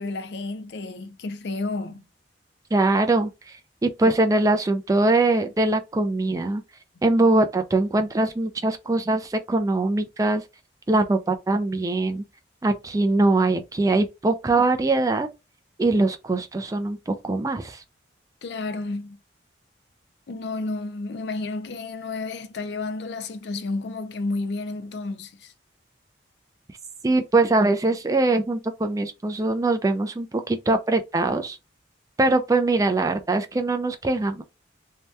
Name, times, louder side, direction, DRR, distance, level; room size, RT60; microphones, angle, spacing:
voice 1, 0.0-2.0 18.4-19.2 20.3-25.5, left 3 dB, 60° left, 0.4 m, -31 dB
voice 2, 2.7-3.3 3.8-6.6 7.0-10.4 10.9-12.2 12.6-15.3 15.8-17.8 27.0-31.6 32.2-34.4, right 2 dB, 20° right, 0.3 m, -22 dB
2.7 x 2.2 x 3.3 m
head